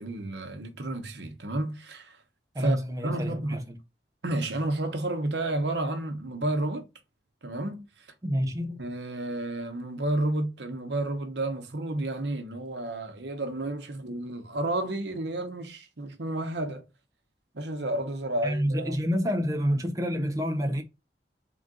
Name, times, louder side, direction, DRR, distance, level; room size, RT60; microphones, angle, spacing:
voice 1, 0.0-2.2 2.6-2.8 3.0-3.6 4.2-6.9 7.4-7.9 8.8-16.8 17.5-18.9, right 1 dB, 80° right, 0.9 m, -31 dB
voice 2, 2.5-3.8 8.2-8.8 18.4-20.8, equal, 20° right, 0.5 m, -28 dB
3.8 x 2.5 x 3.7 m
head